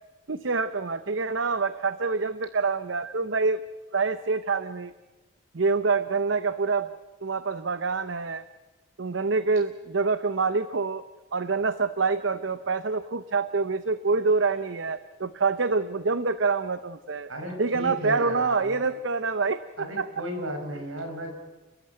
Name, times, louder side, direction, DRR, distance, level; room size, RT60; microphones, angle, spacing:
voice 1, 0.3-3.6 3.9-4.9 5.5-6.9 7.2-8.4 9.0-11.0 11.3-17.3 17.6-20.1, right 4 dB, 65° right, 13 dB, 0.7 m, -26 dB
voice 2, 17.3-18.8 19.8-21.3, equal, 80° right, 4 dB, 5.5 m, -35 dB
29.5 x 14.0 x 9.2 m, 1.2 s
head